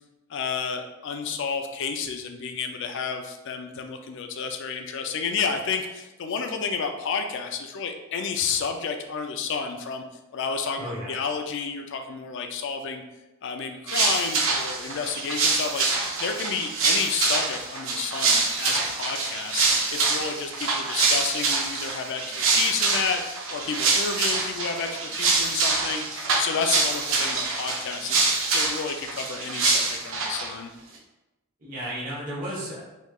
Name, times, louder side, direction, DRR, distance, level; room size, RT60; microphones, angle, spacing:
voice 1, 0.3-10.0 10.3-13.0 13.4-15.9 16.2-23.2 23.5-30.7, left 5 dB, 55° left, 5 dB, 0.4 m, -31 dB
voice 2, 10.8-11.2 31.6-32.8, right 1 dB, 40° right, -7 dB, 1.0 m, -33 dB
sound 1, 13.9-30.5, right 3 dB, 60° right, 0.5 m, -25 dB
3.5 x 3.0 x 2.3 m, 1.0 s
head